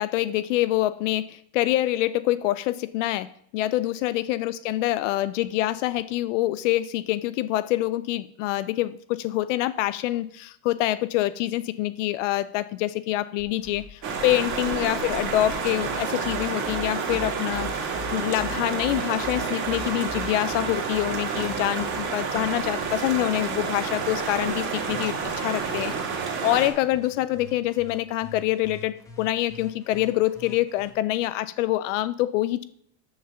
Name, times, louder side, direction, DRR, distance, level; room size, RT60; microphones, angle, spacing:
voice 1, 0.0-25.9 26.4-32.6, left 15 dB, 50° left, 14 dB, 0.5 m, -26 dB
sound 1, 13.4-30.9, left 2 dB, 5° left, 1.0 m, -44 dB
sound 2, 14.0-26.7, right 5 dB, 35° right, 2.1 m, -29 dB
6.5 x 5.6 x 6.9 m, 0.71 s
supercardioid pair, 155°, 49 cm